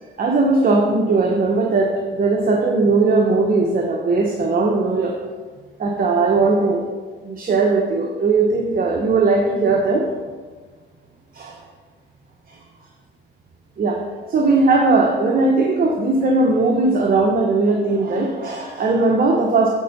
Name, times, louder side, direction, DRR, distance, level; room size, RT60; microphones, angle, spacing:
voice 1, 0.2-5.2 5.8-6.9 7.2-10.1 11.3-11.6 12.5-12.6 13.8-19.7, right 3 dB, 45° right, 1 dB, 0.9 m, -18 dB
8.5 x 4.4 x 5.3 m, 1.5 s
cardioid pair, 90°, 20 cm